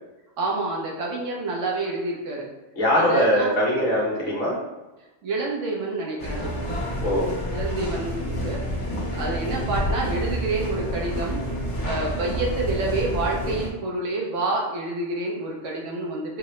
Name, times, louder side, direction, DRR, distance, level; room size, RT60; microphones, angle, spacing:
voice 1, 0.4-2.5 2.9-3.6 5.2-6.5 7.5-11.4 11.8-16.4, right 2 dB, 90° right, -2 dB, 1.2 m, -28 dB
voice 2, 2.7-4.6 7.0-7.3, equal, 45° left, -6 dB, 1.1 m, -21 dB
sound 1, 6.2-13.7, equal, 70° left, 1.2 m, -29 dB
4.5 x 2.0 x 3.1 m, 1.1 s
omnidirectional pair, 1.2 m